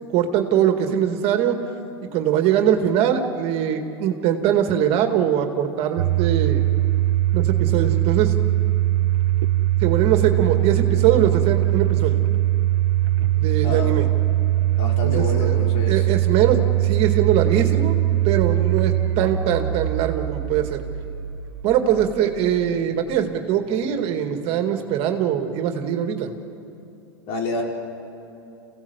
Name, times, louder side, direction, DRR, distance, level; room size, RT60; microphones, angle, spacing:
voice 1, 0.1-1.6 2.1-6.6 7.3-8.3 9.8-12.2 13.4-14.1 15.1-15.5 15.9-18.0 18.2-20.8 21.6-26.3, right 9 dB, 50° right, 6 dB, 2.1 m, -22 dB
Domestic sounds home sounds, 6.0-22.9, right 14 dB, 80° right, 0.8 m, -21 dB
voice 2, 13.2-14.0 14.8-16.1 27.3-27.6, left 3 dB, 50° left, -1 dB, 5.3 m, -29 dB
28.0 x 16.5 x 8.2 m, 2.8 s
hypercardioid pair, 105°, 13 cm